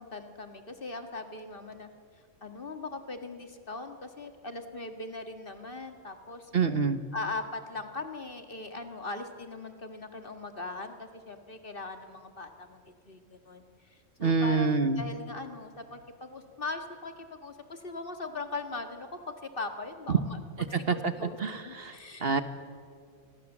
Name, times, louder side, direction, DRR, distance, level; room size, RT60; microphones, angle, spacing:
voice 1, 0.0-1.9 2.4-6.5 7.1-20.4 20.7-22.4, left 3 dB, 45° left, 6 dB, 1.9 m, -40 dB
voice 2, 6.5-7.0 14.2-15.0 20.1-20.2 20.9-21.1 21.4-21.9 22.2-22.4, right 4 dB, 50° right, 10 dB, 1.3 m, -26 dB
28.5 x 22.0 x 7.3 m, 2.1 s
omnidirectional pair, 1.3 m